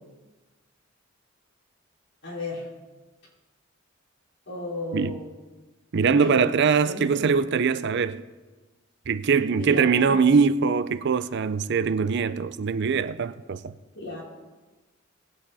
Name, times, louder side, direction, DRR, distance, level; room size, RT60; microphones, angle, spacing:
voice 1, 2.2-2.7 4.5-5.2 6.1-6.5 6.8-7.3 9.5-10.2 13.9-14.2, left 2 dB, 60° left, 4.1 m, -34 dB
voice 2, 5.9-8.2 9.1-13.7, right 5 dB, 60° right, 0.5 m, -22 dB
19.0 x 8.3 x 4.1 m
head